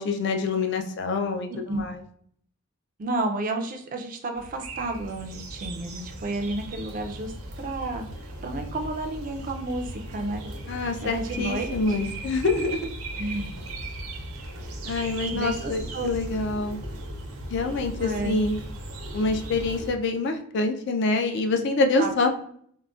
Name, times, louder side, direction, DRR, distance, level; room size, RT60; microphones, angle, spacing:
voice 1, 0.0-2.0 10.7-12.8 14.9-16.8 17.5-18.6 19.1-22.3, left 3 dB, 55° left, 5 dB, 0.3 m, -26 dB
voice 2, 1.5-1.8 3.0-8.1 8.4-10.4 11.0-11.7 13.2-13.6 15.3-16.2 18.0-18.4 22.0-22.1, right 2 dB, 40° right, 4 dB, 0.3 m, -31 dB
sound 1, 4.3-19.9, right 1 dB, 85° right, 0.6 m, -37 dB
3.7 x 2.1 x 2.3 m, 0.63 s
head